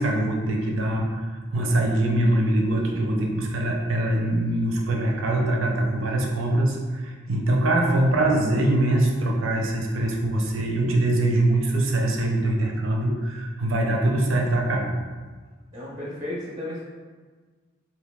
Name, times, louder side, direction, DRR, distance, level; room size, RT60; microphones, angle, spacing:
voice 1, 0.0-14.9, right 1 dB, 90° right, 0 dB, 0.6 m, -23 dB
voice 2, 15.7-16.8, left 1 dB, 20° right, -6 dB, 0.6 m, -33 dB
2.9 x 2.5 x 3.5 m, 1.4 s
head